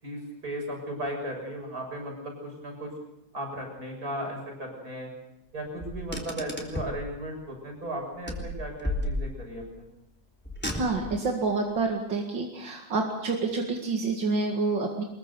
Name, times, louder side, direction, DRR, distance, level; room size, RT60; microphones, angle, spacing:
voice 1, 0.0-2.9 3.3-5.1 5.5-9.9, right 1 dB, 50° right, 1 dB, 7.4 m, -36 dB
Car, 5.8-7.0 8.3-9.6 10.4-11.3, left 1 dB, 5° left, 3.4 m, -33 dB
voice 2, 10.7-15.0, right 3 dB, 85° right, 2 dB, 2.8 m, -28 dB
24.0 x 22.0 x 7.0 m, 0.84 s
omnidirectional pair, 2.0 m